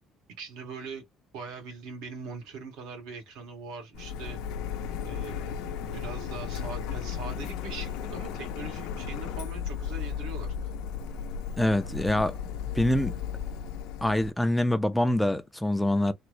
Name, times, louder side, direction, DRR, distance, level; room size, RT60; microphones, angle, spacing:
voice 1, 0.3-1.1 1.3-4.4 5.0-10.7, right 4 dB, 85° right, 1.6 m, -42 dB
Printer, 3.9-14.3, left 7 dB, 90° left, 0.5 m, -35 dB
voice 2, 11.6-12.4 12.7-13.2 14.0-16.1, left 1 dB, 5° left, 0.4 m, -25 dB
3.4 x 2.0 x 3.0 m
cardioid pair, 140°, 0 cm